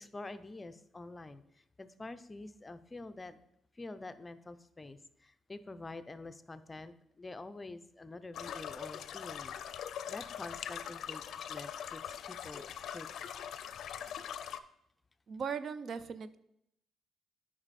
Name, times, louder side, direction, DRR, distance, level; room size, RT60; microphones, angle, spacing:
voice 1, 0.0-3.4 3.7-9.5 9.8-13.1, left 2 dB, 20° left, 12 dB, 0.5 m, -47 dB
sound 1, 8.3-14.6, left 9 dB, 70° left, 0.4 m, -42 dB
voice 2, 15.3-16.4, right 6 dB, 55° right, 13 dB, 0.4 m, -38 dB
8.7 x 5.3 x 4.1 m, 0.78 s
cardioid pair, 90°, 0 cm